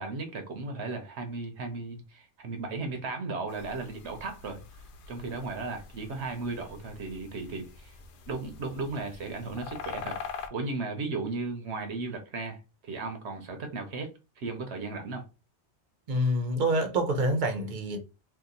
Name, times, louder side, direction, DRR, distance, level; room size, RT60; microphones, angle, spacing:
voice 1, 0.0-4.6 5.1-8.0 8.3-10.2 10.5-12.6 12.8-15.2, right 3 dB, 75° right, 1.0 m, -35 dB
sound 1, 3.5-10.5, left 5 dB, 60° left, 0.7 m, -44 dB
voice 2, 16.1-18.0, right 1 dB, 45° right, 0.8 m, -27 dB
2.9 x 2.5 x 3.8 m
omnidirectional pair, 1.2 m